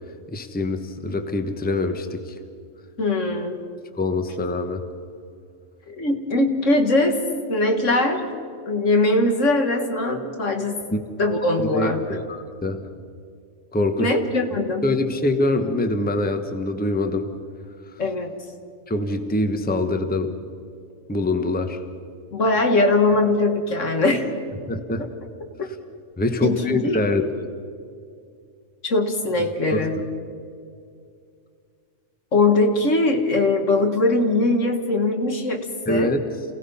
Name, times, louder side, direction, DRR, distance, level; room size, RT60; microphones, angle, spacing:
voice 1, 0.3-2.3 4.0-4.9 10.9-11.0 11.6-12.8 13.7-14.1 14.8-17.3 18.9-20.3 21.1-21.8 24.7-25.0 26.2-27.5 29.7-30.0 35.9-36.3, left 2 dB, 10° left, 7 dB, 1.0 m, -24 dB
voice 2, 3.0-3.6 5.9-7.2 7.5-8.2 8.7-10.8 11.2-12.0 14.0-14.9 18.0-18.3 22.3-24.2 25.0-25.1 25.6-25.7 26.4-27.0 28.8-30.0 32.3-36.2, left 2 dB, 65° left, 4 dB, 2.1 m, -21 dB
28.0 x 17.5 x 5.6 m, 2.3 s
omnidirectional pair, 1.4 m